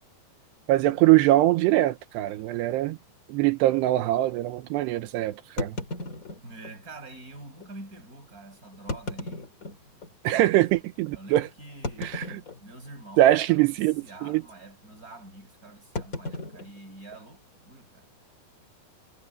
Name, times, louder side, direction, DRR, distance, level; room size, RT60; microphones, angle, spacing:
voice 1, 0.7-3.0 3.3-5.8 10.2-11.5 12.0-12.2 13.2-14.0 14.2-14.4, right 15 dB, 85° right, 3.0 m, -22 dB
sound 1, 0.8-1.0 1.8-1.9 2.2-2.3 2.9-3.0 5.6-6.8 7.6-7.7 8.7-10.2 10.7-10.8 11.8-12.9 13.2-13.6 13.8-14.1 15.9-17.6, left 2 dB, 25° left, 2.2 m, -36 dB
voice 2, 6.4-9.5 10.3-12.3 12.6-18.1, right 2 dB, 20° right, 7.1 m, -46 dB
omnidirectional pair, 4.9 m